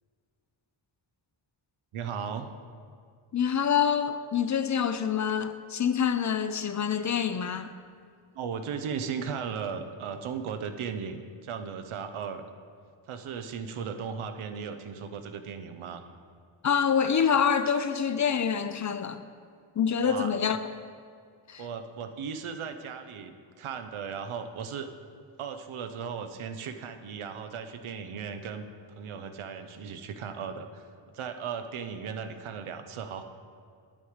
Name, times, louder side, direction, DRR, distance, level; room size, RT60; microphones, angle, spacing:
voice 1, 1.9-2.5 8.3-12.4 13.1-16.0 20.0-20.3 21.6-24.9 25.4-30.9 31.1-33.2, right 6 dB, 85° right, 0.8 m, -36 dB
voice 2, 3.3-7.7 16.6-19.3 19.8-20.6 21.5-21.6, left 7 dB, 40° left, 0.5 m, -26 dB
8.9 x 7.9 x 4.9 m
cardioid pair, 90°, 48 cm